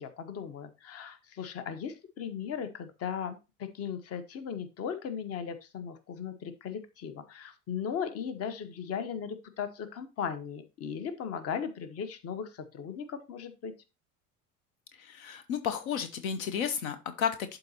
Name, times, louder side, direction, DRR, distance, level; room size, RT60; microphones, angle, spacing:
voice 1, 0.0-13.7, left 7 dB, 30° left, 12 dB, 1.0 m, -37 dB
voice 2, 15.0-17.6, left 8 dB, 65° left, 11 dB, 0.8 m, -32 dB
11.5 x 3.9 x 2.9 m, 0.28 s
figure-of-eight pair, 70°, 46 cm